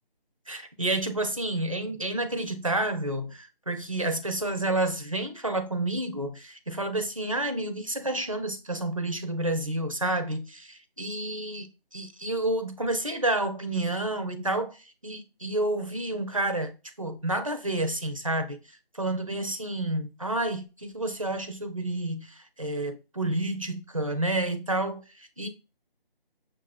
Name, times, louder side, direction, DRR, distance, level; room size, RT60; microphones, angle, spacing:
voice 1, 0.5-11.7 11.9-14.8 15.0-16.7 17.0-18.6 19.0-25.5, right 1 dB, 35° right, 0.5 m, -29 dB
6.3 x 2.4 x 2.3 m
figure-of-eight pair, 170°, 30 cm